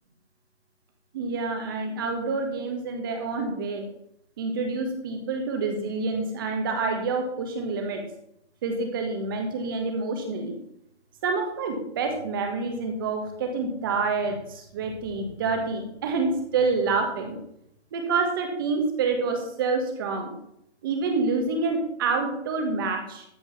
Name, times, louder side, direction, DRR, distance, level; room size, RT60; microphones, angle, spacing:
voice 1, 1.1-3.9 4.4-8.0 8.6-10.5 11.2-17.4 17.9-20.3 20.8-23.2, right 4 dB, 20° right, 4 dB, 1.5 m, -27 dB
14.0 x 5.1 x 6.0 m, 0.75 s
hypercardioid pair, 165°, 35 cm